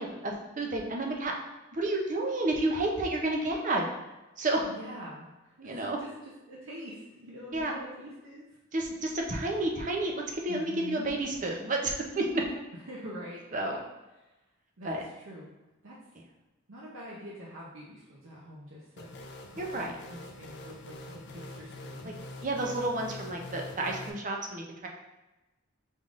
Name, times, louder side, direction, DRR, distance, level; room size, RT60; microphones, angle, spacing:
voice 1, 0.0-1.3 1.7-3.9 4.4-4.6 5.7-6.0 7.5-7.7 8.7-12.4 13.5-13.8 14.8-15.0 19.6-19.9 22.0-22.1 22.4-24.9, right 2 dB, 35° right, 1 dB, 0.6 m, -30 dB
voice 2, 4.7-8.4 8.9-9.0 9.3-9.5 10.5-11.1 12.9-13.8 14.8-15.5 15.8-16.0 16.7-19.2 19.5-22.2, equal, 75° right, -5 dB, 0.7 m, -45 dB
sound 1, 19.0-24.1, left 2 dB, 50° left, 0.4 m, -44 dB
5.4 x 3.4 x 2.5 m, 1.0 s
head